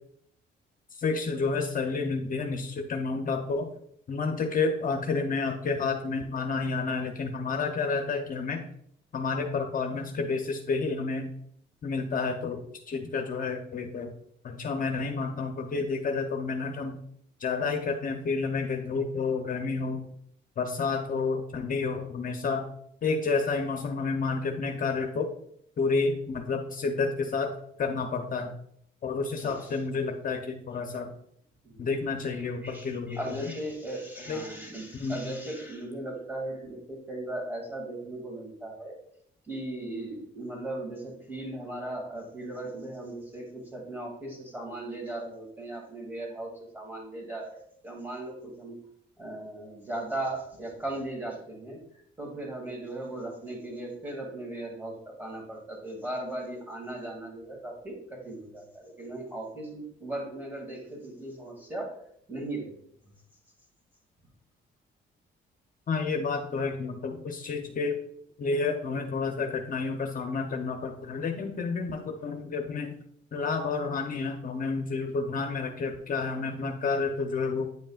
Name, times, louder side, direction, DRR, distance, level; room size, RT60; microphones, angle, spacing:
voice 1, 1.0-3.7 4.1-8.6 9.1-11.3 11.8-12.6 12.9-14.1 14.4-17.0 17.4-20.0 20.6-22.6 23.0-25.3 25.8-27.5 27.8-28.5 29.0-31.1 31.8-33.3 34.3-34.4 35.0-35.2 65.9-68.0 68.4-72.9 73.3-77.7, left 4 dB, 45° left, 4 dB, 0.8 m, -30 dB
voice 2, 29.3-29.8 31.6-31.9 32.3-39.0 39.5-48.8 49.2-61.9 62.3-62.7, right 1 dB, 10° right, 0 dB, 2.4 m, -38 dB
9.2 x 5.3 x 2.4 m, 0.69 s
cardioid pair, 90°, 20 cm